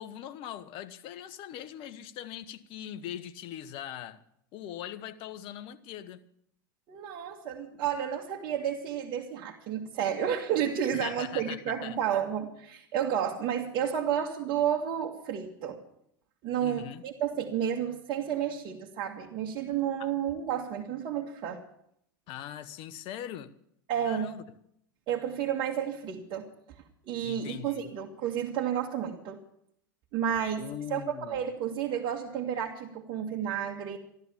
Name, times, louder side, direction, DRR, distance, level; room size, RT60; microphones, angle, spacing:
voice 1, 0.0-4.2 4.5-6.2 10.9-12.0 16.6-17.0 20.0-20.1 22.3-23.5 24.0-24.4 27.2-27.8 30.6-31.5, left 11 dB, 50° left, 1.2 m, -41 dB
voice 2, 6.9-15.8 16.4-21.6 23.9-24.3 25.1-26.5 27.0-29.4 30.1-31.0 31.3-34.0, right 9 dB, 50° right, 1.9 m, -31 dB
14.0 x 12.0 x 7.2 m
hypercardioid pair, 95°, 11 cm